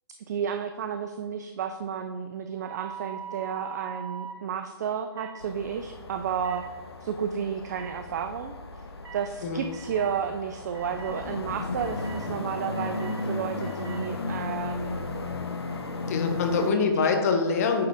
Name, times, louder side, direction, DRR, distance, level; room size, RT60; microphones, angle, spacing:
voice 1, 0.3-6.6 7.0-8.5 9.1-15.0 16.6-17.1, right 7 dB, 40° right, 8 dB, 0.4 m, -32 dB
sound 1, 2.5-4.4 5.1-5.4 6.4-6.6 7.7-7.9 9.0-9.2 9.7-10.2 10.7-11.2 11.8-12.2 12.7-13.2 13.6-14.0, right 8 dB, 65° right, 1.3 m, -42 dB
sound 2, 5.4-16.7, left 3 dB, 80° left, 1.0 m, -35 dB
voice 2, 16.1-17.9, left 5 dB, 35° left, 5 dB, 0.9 m, -24 dB
8.7 x 3.8 x 3.5 m, 1.4 s
hypercardioid pair, 145°, 13 cm